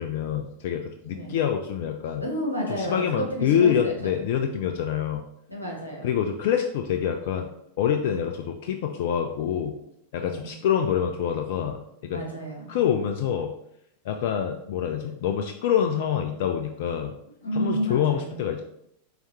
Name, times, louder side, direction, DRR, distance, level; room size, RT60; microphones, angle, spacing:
voice 1, 0.0-2.2 2.8-5.2 6.0-7.5 7.8-9.7 10.1-12.2 12.7-13.5 14.1-17.1 17.5-18.6, left 8 dB, 50° left, 5 dB, 0.3 m, -26 dB
voice 2, 2.2-3.9 5.5-6.1 10.2-10.5 12.1-12.8 17.4-18.4, equal, 85° left, -2 dB, 1.1 m, -31 dB
4.7 x 2.8 x 3.2 m, 0.76 s
figure-of-eight pair, 90°, 0 cm